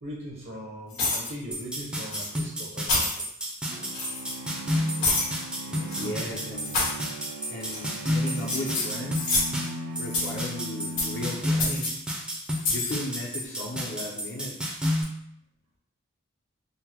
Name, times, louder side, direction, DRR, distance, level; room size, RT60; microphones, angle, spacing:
voice 1, 0.0-3.2 4.2-4.3 4.7-5.2 5.8-6.4, equal, 60° right, -5 dB, 0.8 m, -40 dB
sound 1, 0.9-1.3 2.1-2.3 2.8-3.2 3.9-4.3 5.0-5.3 5.8-6.1 6.6-7.0 7.6-8.0 8.3-9.6 10.0-10.4 11.0-11.2 11.6-11.9 12.5-12.9, left 3 dB, 85° left, 1.5 m, -28 dB
sound 2, 1.5-15.0, equal, 5° right, 0.4 m, -31 dB
sound 3, 3.7-12.0, right 1 dB, 80° right, 0.4 m, -39 dB
voice 2, 5.3-6.8 7.5-9.3 10.0-11.9 12.7-14.5, left 1 dB, 55° left, -3 dB, 0.5 m, -36 dB
3.6 x 2.0 x 2.9 m, 0.73 s
head